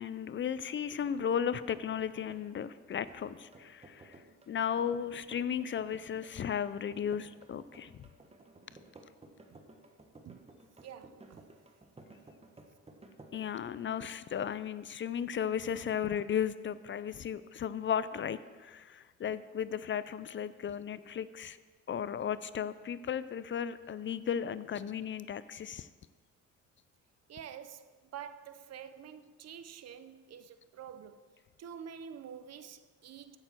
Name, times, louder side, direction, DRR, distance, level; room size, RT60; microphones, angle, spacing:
voice 1, 0.0-4.2 4.5-8.1 13.3-21.6 21.9-25.9, left 8 dB, 40° left, 0.4 m, -35 dB
sound 1, 1.0-13.7, right 2 dB, 20° right, 1.3 m, -56 dB
voice 2, 10.8-11.5 27.3-31.2 31.6-33.4, right 8 dB, 55° right, 0.7 m, -48 dB
15.0 x 6.8 x 4.5 m
cardioid pair, 90°, 30 cm